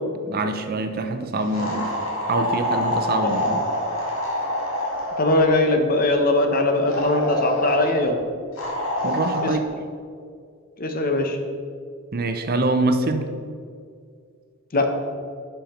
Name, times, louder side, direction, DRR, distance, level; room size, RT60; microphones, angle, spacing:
voice 1, 0.2-1.9 2.3-3.6 9.0-9.6 12.1-13.3, right 2 dB, 50° right, 7 dB, 0.7 m, -24 dB
sound 1, 1.5-5.5 6.9-8.0 8.6-9.5, left 1 dB, 80° left, 2.1 m, -26 dB
voice 2, 5.2-8.2 9.4-9.5 10.8-11.4 14.7-14.9, left 2 dB, 45° left, 4 dB, 0.9 m, -20 dB
10.5 x 5.7 x 4.4 m, 2.2 s
head